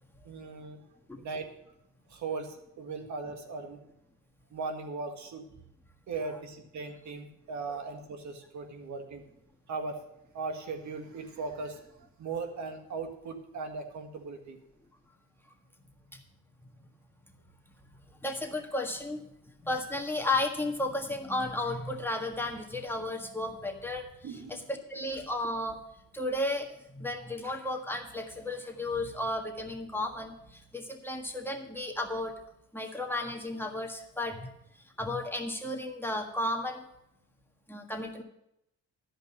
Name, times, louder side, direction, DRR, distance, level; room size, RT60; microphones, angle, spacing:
voice 1, 0.2-0.8 1.2-1.4 2.1-3.8 4.5-5.4 6.1-9.2 9.7-10.0 10.3-11.8 12.2-14.6 24.2-24.6, right 4 dB, 70° right, 5 dB, 1.7 m, -38 dB
voice 2, 18.2-19.3 19.6-24.0 24.3-25.8 26.1-32.3 32.7-34.5 35.0-36.9 37.7-38.2, left 2 dB, 5° left, 2 dB, 1.5 m, -33 dB
13.0 x 5.3 x 7.3 m, 0.81 s
cardioid pair, 90°, 30 cm